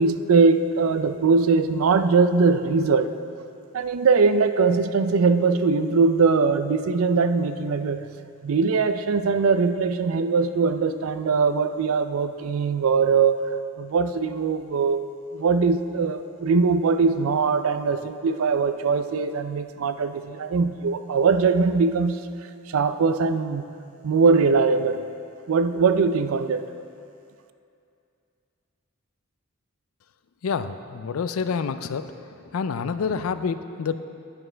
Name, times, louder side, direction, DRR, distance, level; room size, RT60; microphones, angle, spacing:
voice 1, 0.0-3.1 3.7-8.1 8.4-13.4 13.8-15.0 15.3-22.2 22.7-23.7 24.0-25.0 25.5-26.7, right 4 dB, 80° right, 10 dB, 0.4 m, -21 dB
voice 2, 30.4-32.1 32.5-33.9, left 5 dB, 80° left, 11 dB, 0.4 m, -27 dB
10.5 x 8.8 x 3.3 m, 2.5 s
head